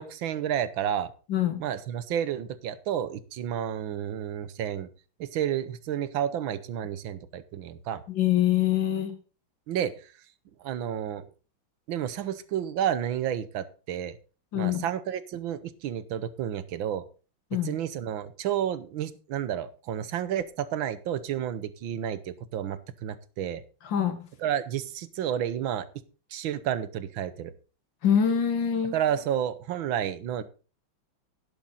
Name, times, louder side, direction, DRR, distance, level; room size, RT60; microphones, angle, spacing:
voice 1, 0.0-1.1 1.6-4.9 5.2-8.0 9.7-10.1 10.6-11.2 11.9-14.2 14.5-17.0 17.6-23.6 24.4-25.9 26.3-27.5 28.9-30.4, right 10 dB, 75° right, 14 dB, 1.6 m, -31 dB
voice 2, 1.3-1.6 8.1-9.1 14.5-14.8 17.5-17.7 23.8-24.3 28.0-28.9, left 9 dB, 65° left, 8 dB, 2.2 m, -24 dB
11.5 x 10.5 x 3.9 m, 0.36 s
omnidirectional pair, 2.2 m